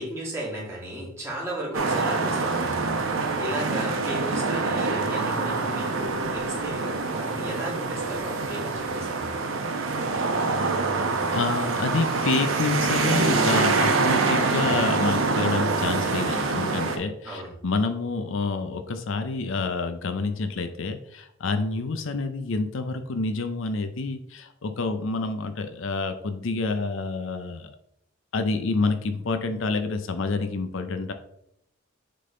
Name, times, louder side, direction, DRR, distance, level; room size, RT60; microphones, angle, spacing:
voice 1, 0.0-2.9 3.2-9.3 17.2-17.5, right 1 dB, 15° right, -6 dB, 2.5 m, -35 dB
sound 1, 1.7-17.0, right 3 dB, 70° right, 0.9 m, -25 dB
voice 2, 10.4-10.8 11.1-27.7 28.3-31.1, left 3 dB, 70° left, 8 dB, 0.6 m, -28 dB
6.7 x 3.8 x 3.8 m, 0.74 s
head